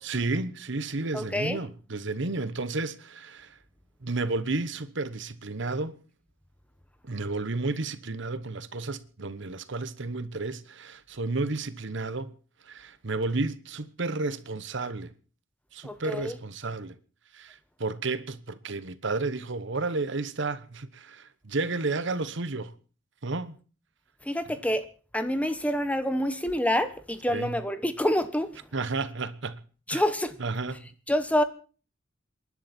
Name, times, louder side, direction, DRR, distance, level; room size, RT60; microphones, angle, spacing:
voice 1, 0.0-3.6 4.0-6.0 7.0-12.3 12.6-15.1 15.7-17.0 17.3-22.7 23.2-23.5 27.3-27.6 28.7-29.6 29.9-30.0 30.4-30.9, right 3 dB, 65° right, 1.1 m, -32 dB
voice 2, 1.1-1.6 15.8-16.4 24.3-24.8 25.1-28.5 29.9-30.3 31.1-31.4, equal, 5° left, 1.1 m, -27 dB
27.5 x 11.0 x 4.4 m
head